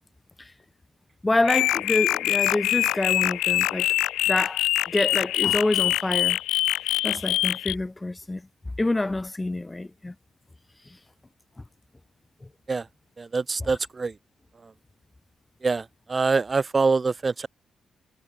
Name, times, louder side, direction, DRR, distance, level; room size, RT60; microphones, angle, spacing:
voice 1, 1.2-4.0 4.3-6.4 7.0-8.5 8.8-10.1 10.9-11.0 11.6-11.7 12.4-12.5 13.6-13.8, left 2 dB, 20° left, 5.8 m, -27 dB
sound 1, 1.4-7.7, left 15 dB, 85° left, 0.8 m, -24 dB
voice 2, 13.2-14.1 15.6-17.5, right 4 dB, 35° right, 1.7 m, -25 dB
supercardioid pair, 55°, 0 cm